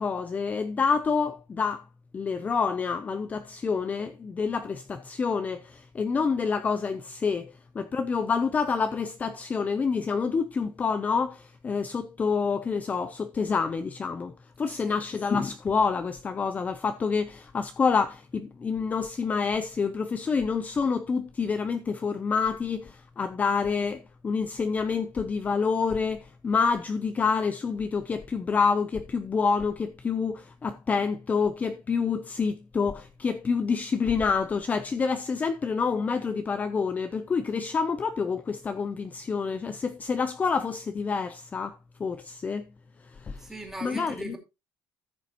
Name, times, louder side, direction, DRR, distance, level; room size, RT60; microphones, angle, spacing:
voice 1, 0.0-1.9 2.1-42.7 43.1-43.4 43.8-44.4, left 5 dB, 20° left, 0.5 m, -28 dB
voice 2, 14.7-15.0 43.4-44.4, right 1 dB, 5° right, 2.5 m, -40 dB
14.5 x 6.8 x 2.9 m
cardioid pair, 160°, 7 cm